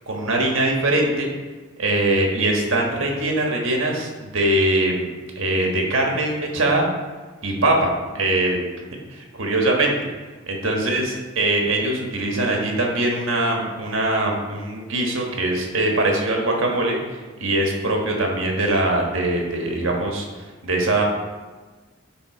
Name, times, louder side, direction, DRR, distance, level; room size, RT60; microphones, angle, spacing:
voice 1, 0.1-1.3 1.8-5.1 5.3-6.9 7.4-8.6 9.1-9.9 10.5-17.0 17.4-21.0, right 1 dB, 65° right, 0 dB, 1.4 m, -22 dB
9.4 x 3.7 x 4.8 m, 1.3 s
head